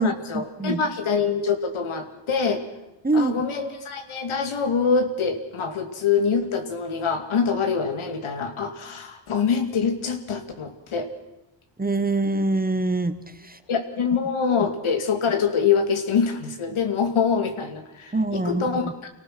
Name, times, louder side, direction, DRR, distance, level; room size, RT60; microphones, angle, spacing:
voice 1, 0.0-2.6 3.1-11.1 13.7-19.1, left 6 dB, 80° left, 7 dB, 2.5 m, -25 dB
voice 2, 3.0-3.3 11.8-13.2 13.5-13.6 18.1-18.8, right 2 dB, 20° right, 11 dB, 1.3 m, -23 dB
26.0 x 18.0 x 6.1 m, 0.90 s
cardioid pair, 80°, 48 cm